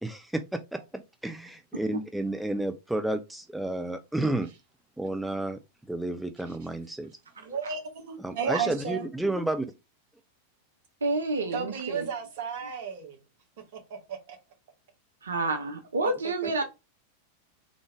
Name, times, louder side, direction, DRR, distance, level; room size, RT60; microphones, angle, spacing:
voice 1, 0.0-4.5 5.0-5.6 5.9-7.1 8.2-9.7, right 1 dB, 5° right, 0.4 m, -31 dB
voice 2, 7.4-9.1 11.5-13.2 13.7-14.4 16.0-16.1, right 6 dB, 50° right, 1.5 m, -33 dB
voice 3, 11.0-12.1 15.2-16.6, right 2 dB, 70° right, 0.7 m, -29 dB
3.8 x 3.5 x 3.4 m
figure-of-eight pair, 90°, 0 cm